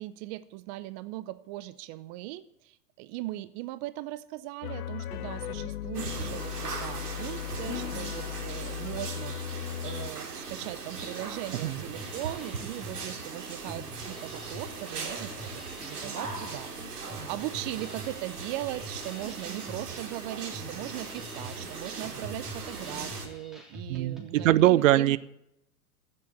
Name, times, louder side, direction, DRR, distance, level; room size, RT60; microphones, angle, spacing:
voice 1, 0.0-25.2, right 16 dB, 30° right, 15 dB, 0.5 m, -39 dB
sound 1, 4.6-10.1, left 11 dB, 70° left, 0.7 m, -37 dB
sound 2, 5.9-23.3, right 4 dB, 75° right, 3.3 m, -39 dB
Drum kit, 11.5-24.6, equal, ahead, 3.2 m, -45 dB
voice 2, 23.9-25.2, right 14 dB, 55° right, 18 dB, 0.8 m, -22 dB
15.0 x 7.7 x 8.5 m, 0.79 s
hypercardioid pair, 105°, 47 cm